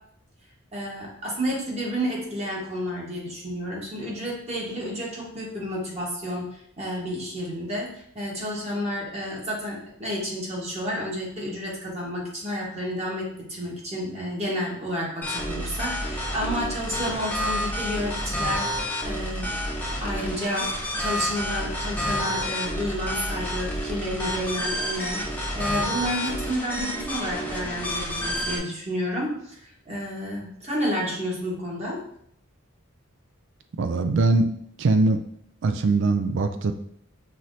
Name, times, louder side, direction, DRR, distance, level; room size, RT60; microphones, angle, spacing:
voice 1, 0.7-19.6 20.0-20.7 21.0-32.0, equal, 30° right, -3 dB, 1.2 m, -31 dB
sound 1, 15.2-28.6, equal, 10° left, 0.6 m, -29 dB
voice 2, 33.8-34.5 34.8-35.2 35.6-36.7, right 3 dB, 60° right, 8 dB, 0.4 m, -21 dB
5.6 x 3.1 x 2.6 m, 0.69 s
head